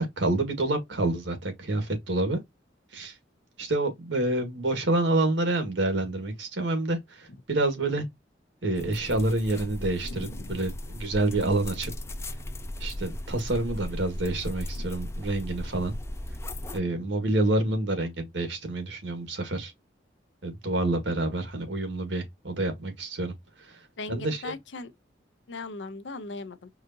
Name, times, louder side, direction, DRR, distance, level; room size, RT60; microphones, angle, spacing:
voice 1, 0.0-2.4 2.9-3.1 3.6-8.0 8.6-11.9 12.8-15.9 16.7-19.7 20.4-23.3 23.6-23.8 24.1-24.5, right 2 dB, 90° right, 1.6 m, -28 dB
sound 1, 8.8-16.8, left 1 dB, 15° left, 0.5 m, -37 dB
voice 2, 10.0-10.6 14.7-14.9 16.9-17.1 24.0-24.9 25.5-26.7, left 3 dB, 80° left, 0.7 m, -39 dB
4.8 x 2.6 x 2.6 m
head